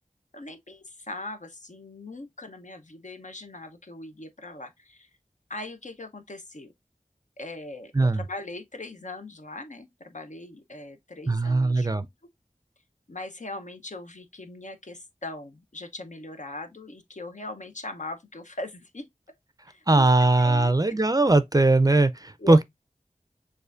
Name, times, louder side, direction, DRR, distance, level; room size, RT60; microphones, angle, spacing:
voice 1, 0.3-5.1 5.5-6.7 7.4-12.1 13.1-19.1 19.7-20.1 20.4-20.7 22.4-22.6, left 2 dB, 60° left, 0.8 m, -40 dB
voice 2, 11.3-12.0 19.9-22.6, right 2 dB, 25° right, 0.4 m, -20 dB
6.5 x 2.5 x 2.4 m
wide cardioid pair, 45°, 14 cm